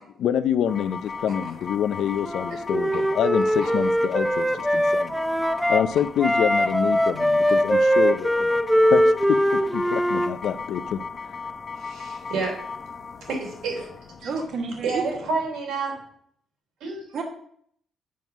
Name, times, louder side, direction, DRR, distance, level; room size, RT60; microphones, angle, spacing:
voice 1, 0.2-5.1 5.7-8.6 8.9-11.0, left 9 dB, 75° left, 12 dB, 0.5 m, -26 dB
sound 1, 0.7-15.6, left 5 dB, 50° left, 0.8 m, -37 dB
Wind instrument woodwind instrument, 2.2-5.8 6.2-10.3, equal, 5° right, 0.7 m, -21 dB
voice 2, 11.8-12.7 13.2-13.9 14.2-14.3 14.8-16.0 16.8-17.1, right 4 dB, 85° right, -1 dB, 3.4 m, -29 dB
voice 3, 14.2-15.1 17.1-17.2, right 4 dB, 60° right, 3 dB, 1.3 m, -30 dB
7.6 x 5.4 x 5.8 m, 0.65 s
cardioid pair, 90°, 0 cm